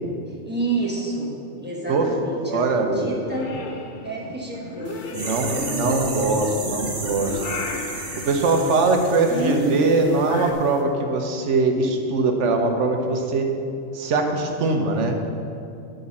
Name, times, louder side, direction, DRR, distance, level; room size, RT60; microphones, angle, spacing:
voice 1, 0.3-1.3 1.6-3.5 4.0-6.6 9.3-9.8, right 2 dB, 10° right, -4 dB, 1.3 m, -29 dB
voice 2, 2.4-3.1 5.1-7.6 8.2-13.5 13.9-15.1, right 3 dB, 80° right, 4 dB, 1.2 m, -22 dB
Purr / Meow, 3.1-10.5, left 4 dB, 50° left, 0.7 m, -36 dB
sound 1, 4.8-10.5 10.7-10.8, right 3 dB, 55° right, 1.4 m, -34 dB
10.5 x 3.9 x 7.1 m, 2.6 s
omnidirectional pair, 1.2 m